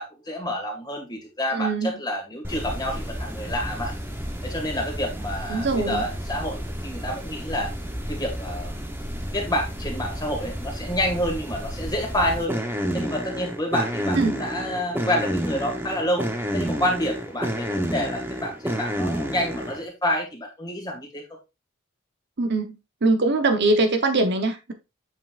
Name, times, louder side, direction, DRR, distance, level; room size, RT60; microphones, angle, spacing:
voice 1, 0.0-3.9 4.4-7.7 8.1-8.7 9.3-12.6 12.9-16.3 16.5-21.2, equal, 20° left, 1.8 m, -28 dB
voice 2, 1.5-1.9 5.5-6.0 14.2-14.4 22.4-22.7 23.0-24.7, right 2 dB, 55° right, 0.9 m, -22 dB
sound 1, 2.4-19.8, equal, 10° right, 0.8 m, -30 dB
7.5 x 5.5 x 2.4 m
head